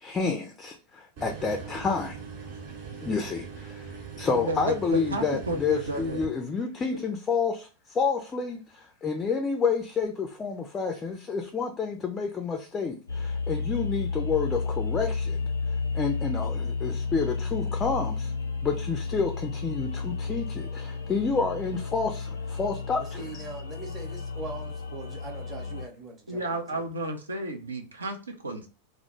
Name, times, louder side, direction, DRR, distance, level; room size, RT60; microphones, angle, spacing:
voice 1, 0.0-2.2 3.0-3.9 4.2-15.4 15.9-18.3 18.6-23.1 23.3-23.4, left 5 dB, 20° left, 0.3 m, -29 dB
sound 1, 1.2-6.3, right 6 dB, 50° right, 0.8 m, -41 dB
voice 2, 4.3-6.3 6.9-7.0 26.3-28.7, right 1 dB, 75° right, 0.5 m, -32 dB
sound 2, 13.1-25.9, left 4 dB, 80° left, 0.5 m, -32 dB
voice 3, 23.0-26.8, right 3 dB, 25° right, 0.7 m, -41 dB
2.1 x 2.0 x 2.9 m
figure-of-eight pair, 90°, 0 cm